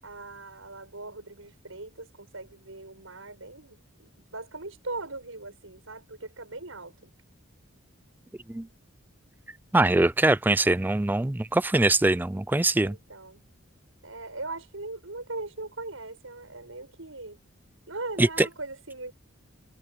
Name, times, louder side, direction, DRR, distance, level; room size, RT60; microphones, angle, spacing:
voice 1, 0.0-7.1 12.8-13.4 14.0-17.4 17.9-19.1, right 2 dB, 75° right, 6.7 m, -40 dB
voice 2, 9.7-12.9 18.2-18.5, right 2 dB, 10° right, 0.3 m, -22 dB
head